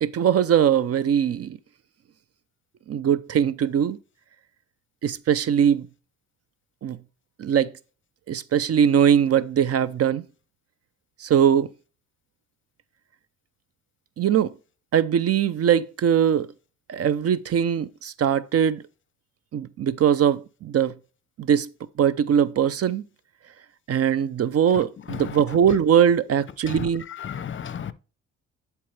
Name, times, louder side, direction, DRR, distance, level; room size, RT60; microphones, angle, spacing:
voice 1, 0.0-1.6 2.9-4.0 5.0-5.9 6.8-7.0 7.4-7.7 8.3-10.2 11.2-11.7 14.2-14.5 14.9-16.5 16.9-18.8 19.5-20.9 21.4-21.7 22.0-23.0 23.9-27.0, right 8 dB, 55° right, 0.6 m, -21 dB
voice 2, 27.2-27.9, left 8 dB, 40° left, 0.8 m, -33 dB
11.0 x 4.6 x 3.3 m
cardioid pair, 90°, 30 cm